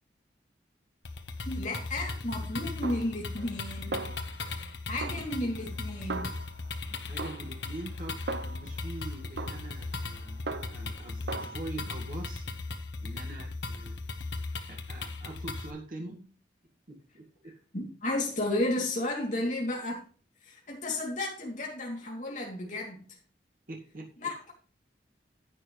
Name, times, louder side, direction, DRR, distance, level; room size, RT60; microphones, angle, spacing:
sound 1, 1.1-15.7, left 3 dB, 80° left, 1.3 m, -37 dB
voice 1, 1.4-4.1 4.9-6.3 17.7-20.1 20.4-23.1 24.2-24.5, left 1 dB, 45° left, 2.9 m, -33 dB
Snare drum, 2.8-3.6 3.9-4.7 5.0-6.8 7.2-8.9 9.4-11.0 11.3-11.5, right 3 dB, 70° right, 0.7 m, -39 dB
voice 2, 5.2-5.5 6.9-8.2 8.4-10.4 10.7-12.5 13.0-14.0 14.7-16.3 16.9-17.6 23.7-24.3, right 2 dB, 50° right, 2.0 m, -44 dB
11.0 x 8.8 x 3.3 m
head